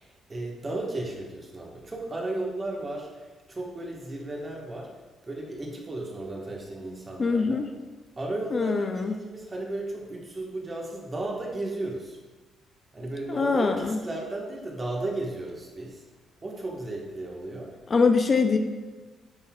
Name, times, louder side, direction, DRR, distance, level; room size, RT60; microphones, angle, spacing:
voice 1, 0.0-4.9 5.2-7.6 8.2-12.2 12.9-16.0 16.4-17.7, right 2 dB, 30° right, -1 dB, 1.4 m, -34 dB
voice 2, 7.2-7.7 8.5-9.1 13.3-14.0 17.9-18.6, left 4 dB, 40° left, 6 dB, 0.4 m, -23 dB
9.6 x 4.2 x 2.3 m, 1.3 s
cardioid pair, 90°, 0 cm